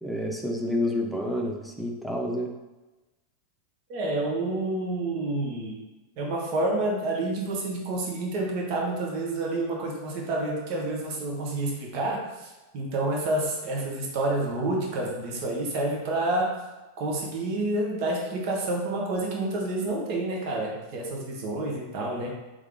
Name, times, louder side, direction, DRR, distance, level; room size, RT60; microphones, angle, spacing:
voice 1, 0.0-2.5, left 1 dB, 5° left, 1 dB, 0.8 m, -29 dB
voice 2, 3.9-5.8 6.2-16.6 17.0-22.3, right 2 dB, 50° right, -2 dB, 1.2 m, -29 dB
3.6 x 3.5 x 3.5 m, 1.1 s
figure-of-eight pair, 90°, 0 cm